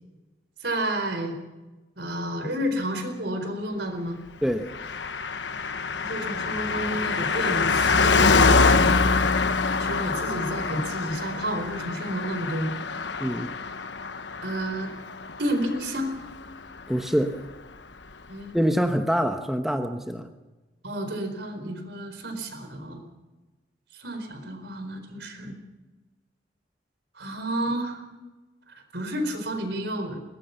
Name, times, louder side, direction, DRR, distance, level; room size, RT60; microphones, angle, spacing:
voice 1, 0.6-1.3 2.0-4.2 5.9-8.8 9.8-12.7 14.4-14.9 15.4-16.2 18.3-18.5 20.8-23.0 23.9-25.6 27.1-28.0 28.7-30.2, right 1 dB, 70° right, 6 dB, 4.4 m, -31 dB
Car passing by, 4.7-16.5 16.8-16.9, left 4 dB, 80° left, 1.2 m, -25 dB
voice 2, 13.2-13.5 16.9-17.4 18.5-20.3, equal, ahead, 6 dB, 1.0 m, -25 dB
22.0 x 19.0 x 7.0 m, 1.1 s
head